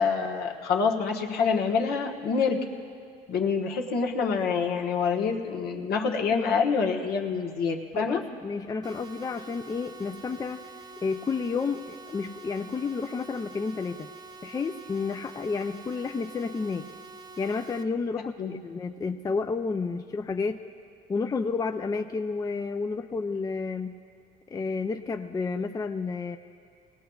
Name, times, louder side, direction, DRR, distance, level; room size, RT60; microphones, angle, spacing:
voice 1, 0.0-2.6 3.3-8.2 18.4-18.5, left 5 dB, 70° left, 0 dB, 1.3 m, -26 dB
voice 2, 7.9-10.6 11.0-14.1 14.4-16.9 17.4-20.6 21.1-23.9 24.5-26.4, left 4 dB, 20° left, 6 dB, 0.4 m, -31 dB
sound 1, 8.8-17.8, right 3 dB, 25° right, 0.6 m, -46 dB
20.5 x 18.0 x 2.4 m, 2.3 s
cardioid pair, 110°, 17 cm